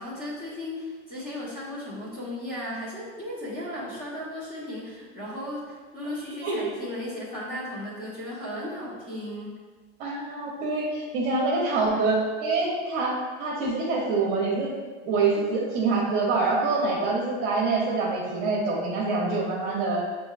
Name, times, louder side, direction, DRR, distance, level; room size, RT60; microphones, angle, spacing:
voice 1, 0.0-9.5, left 1 dB, 25° left, -7 dB, 1.3 m, -35 dB
voice 2, 10.0-14.7 15.1-20.0, right 3 dB, 45° right, -3 dB, 0.9 m, -25 dB
6.0 x 2.7 x 2.4 m, 1.4 s
supercardioid pair, 150°, 36 cm